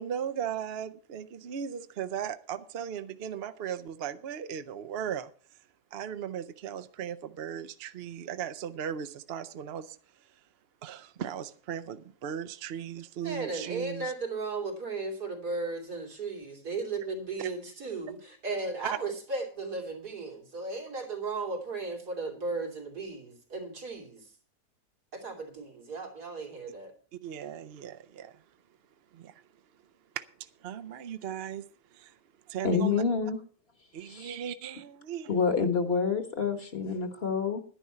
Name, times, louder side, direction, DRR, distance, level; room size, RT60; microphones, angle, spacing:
voice 1, 0.0-5.3 5.9-10.3 10.8-14.1 17.4-17.5 18.8-19.0 27.2-28.4 29.1-29.4 30.1-31.6 31.9-32.2 32.5-33.0 33.9-35.4, right 9 dB, 55° right, 0.7 m, -37 dB
voice 2, 13.2-24.3 25.1-26.9, right 3 dB, 85° right, 3.4 m, -35 dB
voice 3, 32.6-33.4 34.0-34.3 35.3-37.6, left 5 dB, 40° left, 1.5 m, -27 dB
11.0 x 10.5 x 5.6 m
omnidirectional pair, 1.7 m